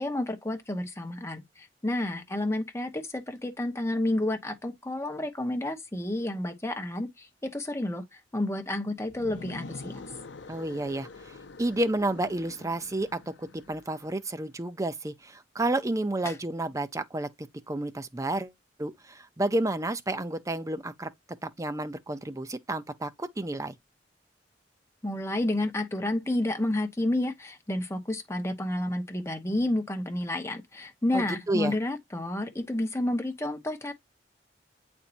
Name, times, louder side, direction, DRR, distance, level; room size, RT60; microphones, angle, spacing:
voice 1, 0.0-10.0 16.2-16.3 25.0-33.9, left 1 dB, 15° left, 1.1 m, -30 dB
sound 1, 9.1-14.1, left 3 dB, 85° left, 0.7 m, -45 dB
voice 2, 10.5-18.5 18.8-21.1 21.4-23.8 31.1-31.7, right 1 dB, 20° right, 0.6 m, -31 dB
8.3 x 4.4 x 2.6 m
head